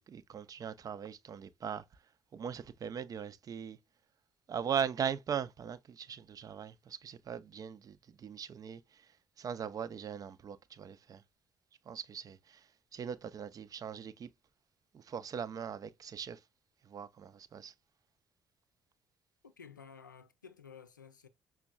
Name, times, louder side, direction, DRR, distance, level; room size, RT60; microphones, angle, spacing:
voice 1, 0.0-1.8 2.3-3.8 4.5-8.8 9.4-11.2 11.9-12.6 12.9-14.3 14.9-16.4 16.9-17.7, right 7 dB, 35° right, 0.5 m, -39 dB
voice 2, 19.4-21.3, left 6 dB, 85° left, 0.4 m, -53 dB
5.9 x 2.3 x 2.2 m
figure-of-eight pair, 45°, 10 cm